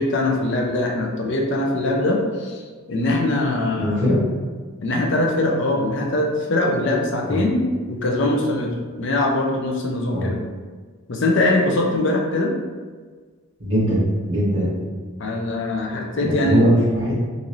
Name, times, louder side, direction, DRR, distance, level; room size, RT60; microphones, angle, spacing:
voice 1, 0.0-4.2 4.8-7.6 7.9-10.4 11.1-12.5 15.2-16.7, left 2 dB, 55° left, 0 dB, 0.6 m, -22 dB
voice 2, 3.8-4.1 7.3-7.4 10.1-10.3 13.6-14.7 16.2-17.2, equal, 60° right, -12 dB, 1.4 m, -20 dB
3.9 x 2.7 x 3.0 m, 1.5 s
head